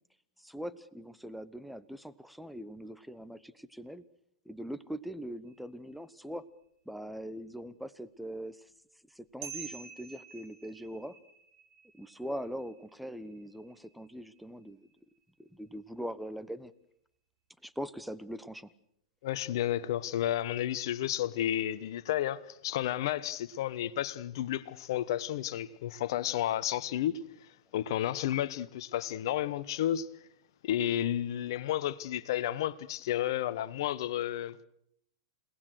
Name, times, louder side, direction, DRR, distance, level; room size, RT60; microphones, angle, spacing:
voice 1, 0.4-4.0 4.4-6.5 6.8-8.7 9.1-11.2 11.9-14.9 15.4-16.7 17.6-18.7, equal, ahead, 1.2 m, -41 dB
sound 1, 5.5-6.1 9.4-15.2, right 7 dB, 55° right, 6.5 m, -50 dB
voice 2, 19.2-27.2 27.7-30.1 30.6-34.6, left 12 dB, 55° left, 1.2 m, -32 dB
29.5 x 19.0 x 6.5 m
figure-of-eight pair, 105°, 3 cm